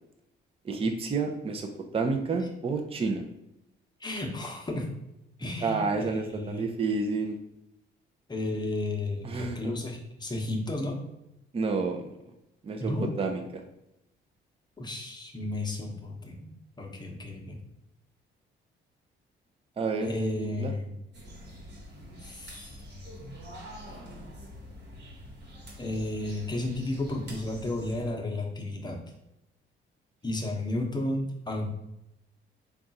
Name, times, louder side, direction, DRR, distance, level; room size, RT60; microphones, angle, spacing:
voice 1, 0.6-3.2 5.6-7.4 9.2-9.7 11.5-12.0 12.6-13.6 19.8-20.1 20.4-20.7, right 4 dB, 30° right, 4 dB, 0.5 m, -30 dB
voice 2, 4.0-4.9 5.4-6.7 8.3-11.0 12.8-13.1 14.8-16.5 16.8-17.6 20.0-20.9 22.2-22.7 25.8-29.0 30.2-31.7, left 1 dB, 20° left, 1 dB, 0.8 m, -33 dB
sound 1, 21.1-28.1, equal, 55° right, 1.2 m, -45 dB
3.6 x 2.4 x 4.0 m, 0.87 s
cardioid pair, 90°, 20 cm